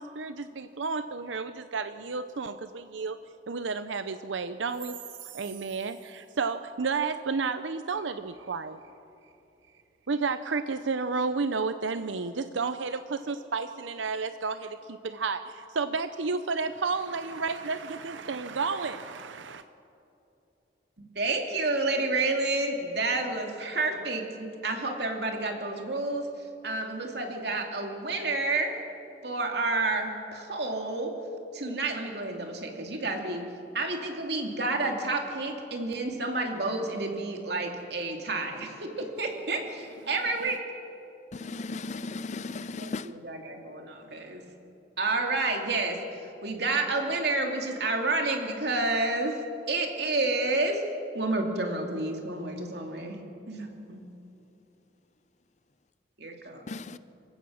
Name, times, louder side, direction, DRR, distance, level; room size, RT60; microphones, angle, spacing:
voice 1, 0.0-3.2 3.5-8.8 10.1-19.6, right 4 dB, 85° right, 0.6 m, -32 dB
voice 2, 21.1-28.8 29.2-31.1 31.5-33.4 33.7-40.6 42.8-44.4 45.0-49.4 49.7-50.8 51.1-53.2 53.5-54.0 56.2-56.8, right 2 dB, 60° right, 2.7 m, -30 dB
voice 3, 41.4-43.1 56.7-57.0, left 3 dB, 40° left, 0.5 m, -36 dB
27.0 x 15.5 x 6.4 m
head